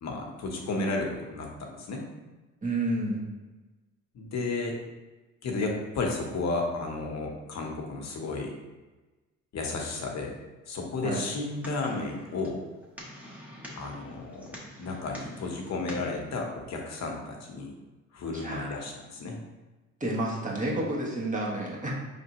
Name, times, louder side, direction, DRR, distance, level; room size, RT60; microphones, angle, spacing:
voice 1, 0.0-2.1 4.1-4.8 5.4-8.5 9.5-10.4 10.7-12.6 13.8-17.7 18.1-19.4, left 3 dB, 60° left, 1 dB, 1.0 m, -33 dB
voice 2, 2.6-3.2 11.0-11.2 18.3-18.7 20.0-21.9, right 1 dB, 25° right, -4 dB, 1.4 m, -30 dB
sound 1, 11.2-16.2, left 1 dB, 5° right, 1.3 m, -46 dB
5.0 x 3.3 x 2.9 m, 1.2 s
cardioid pair, 90°, 30 cm